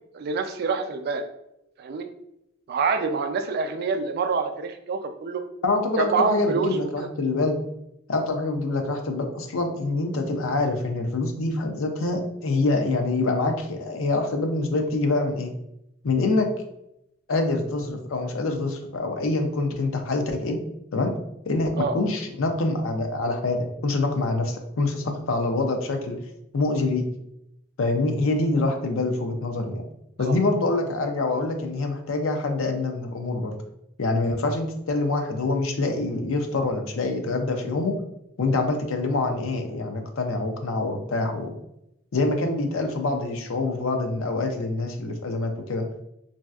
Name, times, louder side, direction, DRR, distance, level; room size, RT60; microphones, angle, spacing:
voice 1, 0.1-1.2 1.8-2.1 2.7-5.4 6.0-7.1 21.8-21.9 30.2-30.4, right 5 dB, 50° right, 6 dB, 0.3 m, -26 dB
voice 2, 5.6-7.6 8.1-15.5 16.0-16.5 17.3-20.6 20.9-21.1 21.5-26.2 26.5-27.1 27.8-29.8 30.2-33.5 34.0-38.0 38.4-41.6 42.1-45.9, left 2 dB, 80° left, 5 dB, 0.5 m, -25 dB
3.1 x 2.6 x 2.3 m, 0.82 s
head